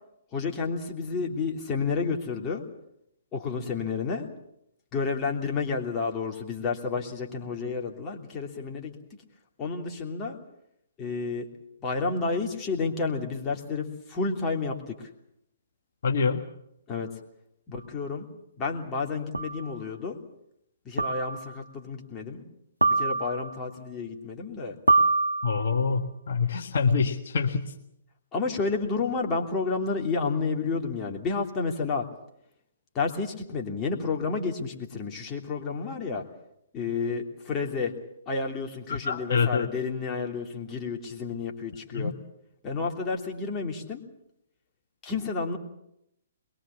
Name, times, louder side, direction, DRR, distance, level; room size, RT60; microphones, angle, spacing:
voice 1, 0.3-2.6 3.3-4.3 4.9-8.9 9.6-10.4 11.0-11.4 11.8-14.9 16.9-17.1 17.7-18.3 18.6-20.2 20.8-22.4 22.8-24.7 28.3-32.1 32.9-36.2 36.7-37.9 38.3-42.1 42.6-44.0 45.0-45.6, left 4 dB, 20° left, 0 dB, 3.1 m, -30 dB
voice 2, 16.0-16.4 25.4-27.7 38.9-39.7 41.9-42.1, left 5 dB, 55° left, 3 dB, 1.6 m, -26 dB
sound 1, 17.7-17.8 19.3-19.7 21.0-21.5 22.8-23.6 24.9-25.8, right 3 dB, 85° right, 1.2 m, -25 dB
22.5 x 22.5 x 7.2 m, 0.79 s
figure-of-eight pair, 125°, 0 cm